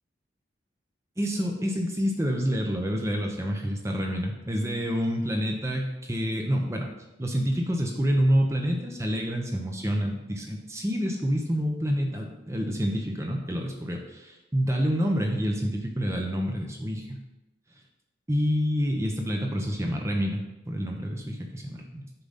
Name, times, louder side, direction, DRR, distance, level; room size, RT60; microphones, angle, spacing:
voice 1, 1.2-6.9 7.2-17.2 18.3-22.1, equal, 15° right, 1 dB, 0.6 m, -28 dB
6.8 x 3.8 x 5.5 m, 0.99 s
head